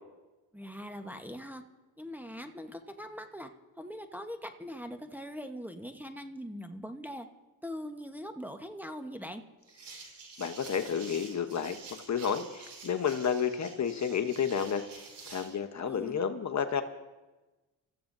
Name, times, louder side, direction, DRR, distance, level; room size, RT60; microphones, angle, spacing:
voice 1, 0.5-1.6 2.0-3.5 3.8-7.3 7.6-9.4 15.8-16.2, equal, 5° right, 4 dB, 1.1 m, -41 dB
sound 1, 9.7-15.6, right 4 dB, 65° right, 4.1 m, -49 dB
voice 2, 10.4-11.8 12.1-14.8 15.3-16.8, left 7 dB, 40° left, 7 dB, 1.0 m, -31 dB
26.5 x 14.5 x 2.7 m, 1.1 s
supercardioid pair, 70°, 43 cm